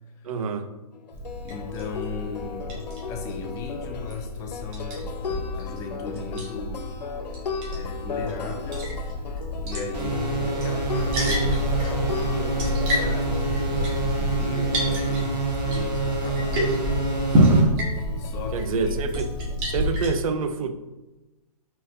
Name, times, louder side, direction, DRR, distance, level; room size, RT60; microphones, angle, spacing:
voice 1, 0.2-0.7 17.3-17.8 18.5-19.3 19.6-20.7, right 5 dB, 60° right, 9 dB, 0.5 m, -27 dB
sound 1, 0.9-15.4 16.9-19.9, left 5 dB, 90° left, 0.5 m, -37 dB
Liquid, 1.1-20.1, equal, 30° right, 1.3 m, -28 dB
voice 2, 1.4-9.0 9.6-16.8 18.2-19.1, left 5 dB, 15° left, 3 dB, 0.4 m, -37 dB
sound 2, 9.9-17.6, right 3 dB, 80° right, 1.1 m, -28 dB
4.1 x 4.1 x 2.5 m, 1.1 s
hypercardioid pair, 135°, 20 cm